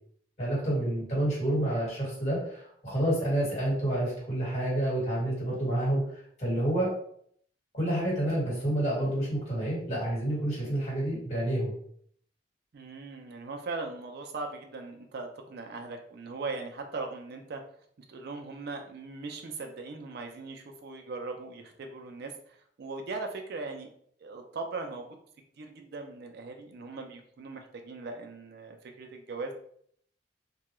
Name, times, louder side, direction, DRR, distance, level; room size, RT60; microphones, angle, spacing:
voice 1, 0.4-6.9 7.7-11.8, right 1 dB, 40° left, -5 dB, 1.4 m, -29 dB
voice 2, 12.7-17.6 18.1-23.9 24.2-25.2 25.6-29.5, right 3 dB, 60° right, 4 dB, 0.4 m, -39 dB
2.3 x 2.2 x 2.9 m, 0.63 s
head